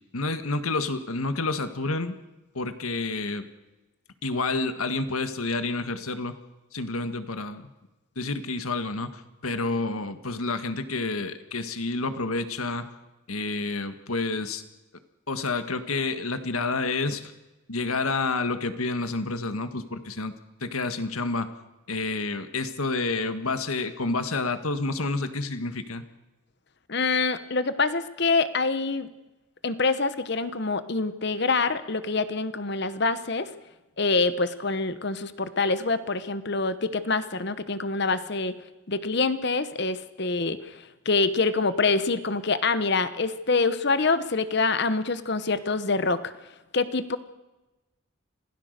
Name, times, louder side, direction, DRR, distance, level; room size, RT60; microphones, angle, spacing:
voice 1, 0.1-2.1 2.5-3.4 4.2-6.3 6.7-7.7 8.1-12.9 13.3-14.6 15.3-17.3 17.7-20.3 20.6-21.5 21.9-26.0, left 3 dB, 90° left, 9 dB, 1.7 m, -29 dB
voice 2, 26.9-29.1 29.6-33.5 34.0-38.5 38.9-40.7 41.0-46.2 46.7-47.2, left 3 dB, 50° left, 13 dB, 1.0 m, -25 dB
26.5 x 17.0 x 6.7 m, 1.1 s
head